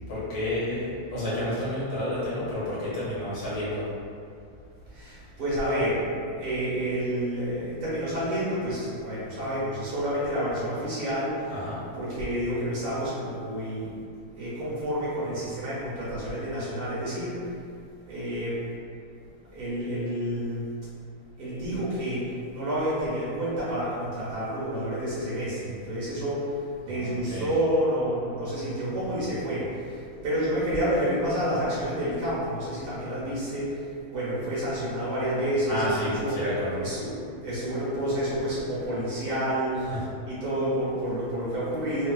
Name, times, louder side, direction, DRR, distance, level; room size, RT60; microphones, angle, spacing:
voice 1, 0.1-3.9 11.5-11.8 26.8-27.5 35.7-36.8 39.9-40.0, left 1 dB, 60° left, -10 dB, 1.8 m, -30 dB
voice 2, 4.9-6.0 6.4-11.5 12.0-14.0 14.4-17.5 18.1-18.6 19.5-20.7 21.4-26.5 26.9-36.4 36.8-39.8 40.3-42.1, equal, 90° right, -10 dB, 2.2 m, -29 dB
4.5 x 2.4 x 2.3 m, 2.4 s
omnidirectional pair, 2.3 m